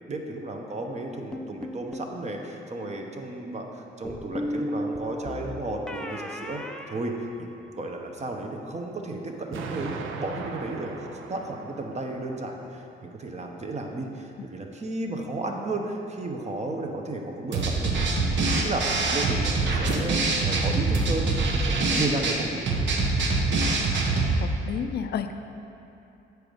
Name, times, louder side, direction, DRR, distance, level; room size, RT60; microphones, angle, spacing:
voice 1, 0.1-6.6 6.9-7.5 7.8-10.9 11.3-22.6, right 2 dB, 35° right, 2 dB, 0.9 m, -33 dB
sound 1, 1.3-2.2 4.1-7.8, equal, 5° left, 0.4 m, -35 dB
Explosion, 9.5-12.5, right 5 dB, 80° right, 0.6 m, -38 dB
sound 2, 17.5-24.4, right 3 dB, 65° right, 0.9 m, -24 dB
voice 2, 24.4-25.3, left 8 dB, 55° left, 9 dB, 0.5 m, -31 dB
7.9 x 4.6 x 5.2 m, 2.8 s
cardioid pair, 90°, 20 cm